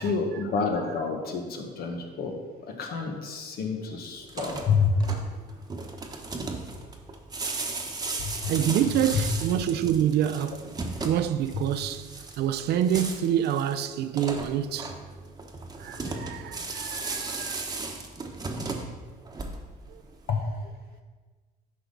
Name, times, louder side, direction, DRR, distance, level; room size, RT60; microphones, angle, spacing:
voice 1, 0.0-5.0 8.2-8.3 20.3-20.5, left 5 dB, 65° left, 1.4 m, -28 dB
sound 1, 4.2-19.9, right 3 dB, 20° right, 1.1 m, -36 dB
voice 2, 8.5-10.7 11.0-12.1 12.4-14.9 15.8-17.7 19.9-20.0, right 10 dB, 75° right, 0.6 m, -27 dB
10.5 x 5.7 x 4.0 m
cardioid pair, 110°, 17 cm